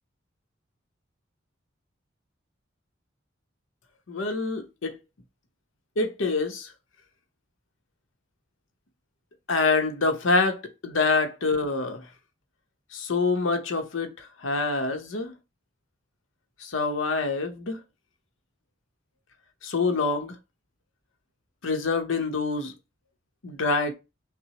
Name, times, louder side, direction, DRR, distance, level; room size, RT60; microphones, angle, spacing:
voice 1, 4.1-5.0 6.0-6.7 9.5-12.1 12.9-15.3 16.6-17.8 19.6-20.4 21.6-22.7 23.4-23.9, left 3 dB, 80° left, 0.8 m, -26 dB
5.8 x 2.0 x 2.9 m
head